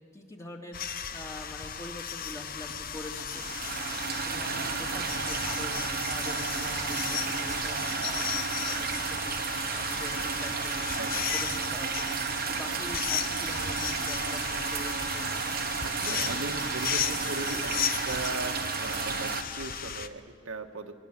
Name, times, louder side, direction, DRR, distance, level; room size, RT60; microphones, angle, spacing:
voice 1, 0.1-15.6, left 1 dB, 15° left, 1 dB, 2.4 m, -44 dB
sound 1, 0.7-20.1, left 8 dB, 45° left, 0.9 m, -35 dB
sound 2, 3.3-19.4, right 6 dB, 50° right, 1.2 m, -32 dB
voice 2, 15.8-20.9, right 2 dB, 90° right, 4 dB, 1.6 m, -38 dB
25.5 x 24.5 x 7.5 m, 2.1 s
head